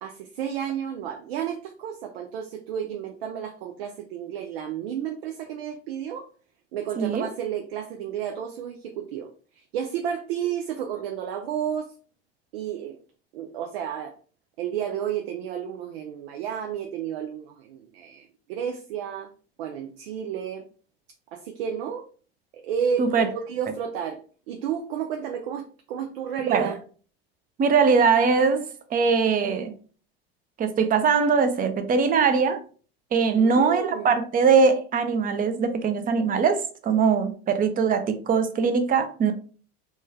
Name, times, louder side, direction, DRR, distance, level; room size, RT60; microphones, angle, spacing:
voice 1, 0.0-6.3 6.7-11.9 12.5-13.0 13.3-14.1 14.6-19.3 19.6-20.7 21.3-22.1 22.6-24.2 24.5-26.8 33.3-34.1, right 8 dB, 75° right, 0.5 m, -32 dB
voice 2, 7.0-7.3 23.0-23.3 26.5-26.7 27.6-29.7 30.6-32.6 33.1-39.3, right 5 dB, 30° right, 0.6 m, -21 dB
3.1 x 2.3 x 3.1 m
hypercardioid pair, 80°, 30 cm